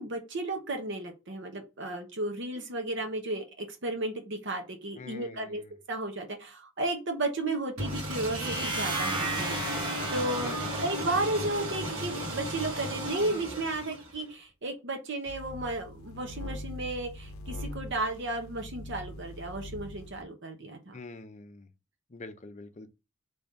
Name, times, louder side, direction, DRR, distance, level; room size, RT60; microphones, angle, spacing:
voice 1, 0.0-5.6 5.9-21.0, right 2 dB, 55° right, 0.9 m, -34 dB
voice 2, 5.0-5.7 10.4-10.8 20.9-21.7 22.1-22.9, left 3 dB, 35° left, 0.6 m, -45 dB
sound 1, 7.8-14.3, right 1 dB, 85° right, 1.7 m, -35 dB
sound 2, 8.3-12.1, right 2 dB, 20° right, 0.9 m, -35 dB
sound 3, 15.3-20.2, left 1 dB, 80° left, 0.6 m, -42 dB
3.8 x 3.4 x 3.9 m
head